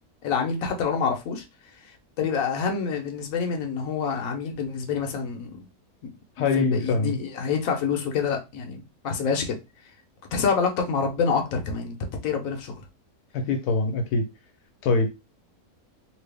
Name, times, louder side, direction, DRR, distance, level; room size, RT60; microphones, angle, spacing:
voice 1, 0.2-1.4 2.2-5.5 6.4-9.6 10.3-12.0 12.2-12.8, left 5 dB, 65° left, 1.2 m, -27 dB
voice 2, 6.4-7.2 13.3-14.2 14.8-15.1, left 4 dB, 85° left, 1.2 m, -23 dB
3.0 x 2.8 x 3.3 m
omnidirectional pair, 1.6 m